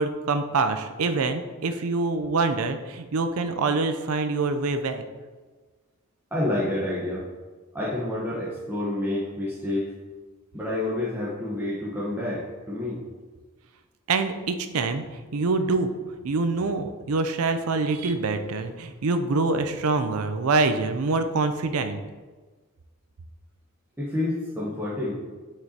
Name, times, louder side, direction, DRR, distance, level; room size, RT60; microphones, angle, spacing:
voice 1, 0.0-5.0 14.1-15.0 15.3-15.9 16.2-22.0, right 3 dB, 90° right, 8 dB, 0.5 m, -25 dB
voice 2, 6.3-7.3 7.7-9.9 10.5-13.0 24.0-25.1, left 1 dB, 10° right, -7 dB, 1.0 m, -28 dB
7.6 x 5.0 x 2.8 m, 1.3 s
head